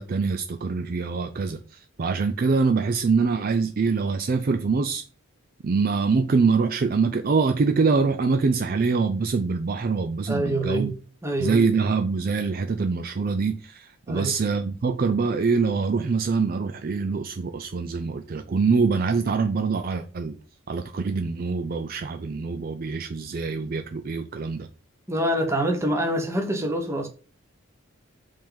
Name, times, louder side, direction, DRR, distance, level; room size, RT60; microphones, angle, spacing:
voice 1, 0.0-5.0 5.6-10.9 11.4-20.4 20.7-24.7, right 4 dB, 45° right, 0.4 m, -24 dB
voice 2, 10.3-10.9 11.2-11.6 14.1-14.4 25.1-27.1, right 1 dB, 15° right, 1.1 m, -25 dB
5.5 x 3.6 x 5.2 m
head